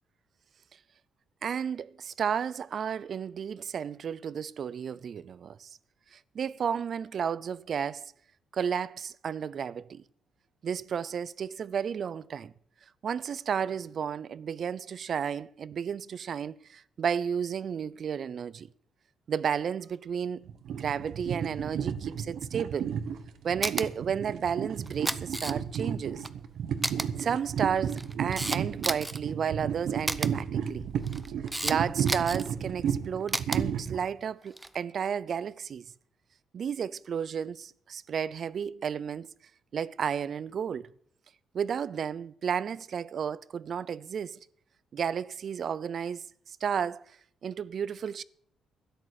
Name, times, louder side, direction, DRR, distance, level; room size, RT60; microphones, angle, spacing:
voice 1, 1.4-5.7 6.1-8.1 8.5-10.0 10.6-12.5 13.0-18.7 19.3-22.9 23.4-26.3 27.1-30.9 31.6-35.9 36.5-39.3 39.7-40.9 41.5-44.4 44.9-47.0 47.4-48.2, right 7 dB, 55° right, 0.5 m, -32 dB
sound 1, 20.5-34.0, right 8 dB, 75° right, 1.2 m, -33 dB
Camera, 23.6-23.9 24.9-25.8 26.2-26.3 26.8-27.1 27.8-29.2 30.1-30.3 31.0-31.8 32.1-32.5 33.3-33.6 34.5-34.8, right 1 dB, 10° right, 0.7 m, -31 dB
12.5 x 10.5 x 6.6 m
cardioid pair, 90°, 0 cm